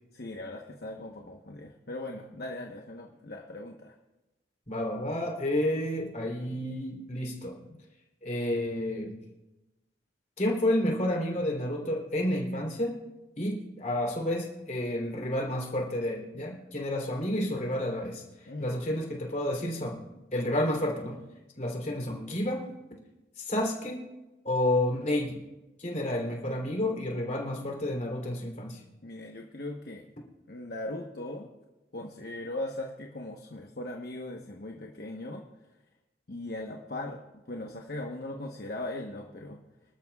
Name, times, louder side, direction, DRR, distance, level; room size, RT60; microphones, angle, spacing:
voice 1, 0.1-3.9 7.7-7.8 18.5-18.9 29.0-30.1 30.5-31.5 31.9-35.4 36.3-39.6, left 1 dB, 60° left, 1 dB, 1.1 m, -39 dB
voice 2, 4.7-7.6 8.2-9.2 10.4-13.0 13.4-18.2 18.6-20.0 20.3-21.2 21.6-23.0 23.4-24.0 24.4-25.4 25.8-28.8, left 1 dB, 45° left, 0 dB, 3.3 m, -30 dB
26.0 x 13.0 x 2.4 m, 1.0 s
head